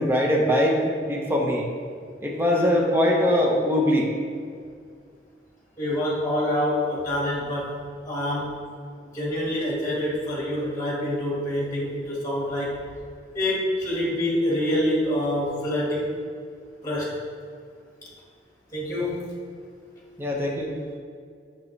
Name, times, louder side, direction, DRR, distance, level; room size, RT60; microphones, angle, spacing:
voice 1, 0.0-1.7 2.2-4.1 20.2-20.7, left 1 dB, 15° right, -1 dB, 0.8 m, -22 dB
voice 2, 5.8-7.8 8.1-8.6 9.1-12.8 13.3-16.1 16.8-17.2 18.7-19.3, left 1 dB, 20° left, -5 dB, 1.7 m, -26 dB
7.4 x 6.1 x 3.2 m, 2.2 s
head